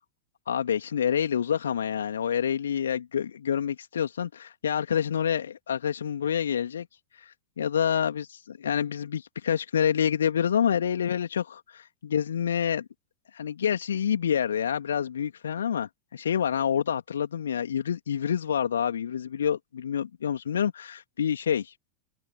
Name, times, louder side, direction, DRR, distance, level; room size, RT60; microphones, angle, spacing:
voice 1, 0.5-6.9 7.2-12.8 13.3-21.7, left 8 dB, 65° left, 2.7 m, -27 dB
figure-of-eight pair, 90°, 0 cm